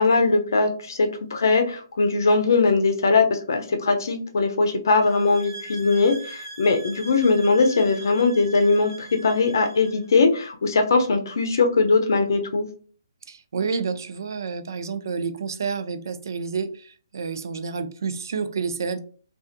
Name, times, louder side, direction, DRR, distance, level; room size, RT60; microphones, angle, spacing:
voice 1, 0.0-12.6, left 3 dB, 60° left, 0.6 m, -20 dB
sound 1, 5.0-10.1, right 2 dB, 85° right, 1.2 m, -41 dB
voice 2, 13.3-19.0, right 5 dB, 60° right, 0.4 m, -29 dB
2.5 x 2.4 x 2.5 m
hypercardioid pair, 170°, 2 cm